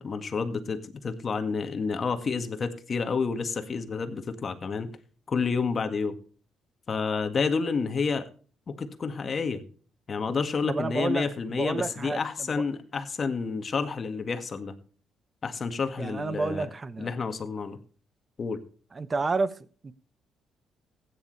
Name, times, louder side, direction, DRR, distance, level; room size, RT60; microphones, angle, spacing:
voice 1, 0.0-4.9 5.3-6.2 6.9-8.3 8.7-9.6 10.1-14.7 15.4-16.7 17.0-17.8 18.4-18.6, left 5 dB, 40° left, 1.8 m, -29 dB
voice 2, 10.7-12.5 16.0-17.1 18.9-19.9, right 3 dB, 30° right, 1.0 m, -31 dB
15.5 x 9.9 x 3.3 m
cardioid pair, 90°, 0 cm